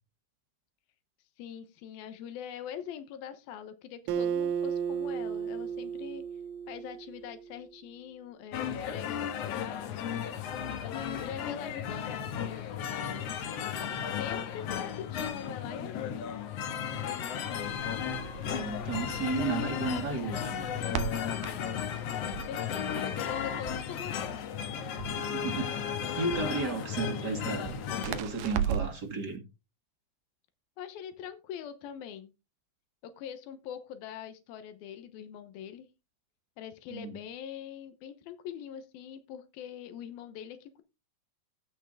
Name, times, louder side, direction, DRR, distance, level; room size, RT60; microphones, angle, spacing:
voice 1, 1.4-6.3 6.7-10.2 10.8-16.3 21.4-24.4 30.8-32.3 33.0-35.9 36.6-40.8, left 9 dB, 90° left, 2.9 m, -43 dB
Acoustic guitar, 4.1-7.6, right 7 dB, 85° right, 2.8 m, -34 dB
sound 1, 8.5-28.2, left 8 dB, 65° left, 1.6 m, -35 dB
Crackle, 17.5-29.1, right 9 dB, 70° right, 2.1 m, -39 dB
voice 2, 18.5-20.6 25.1-27.8 28.0-29.4 36.9-37.1, right 3 dB, 35° right, 1.9 m, -34 dB
15.5 x 5.6 x 3.8 m
omnidirectional pair, 4.2 m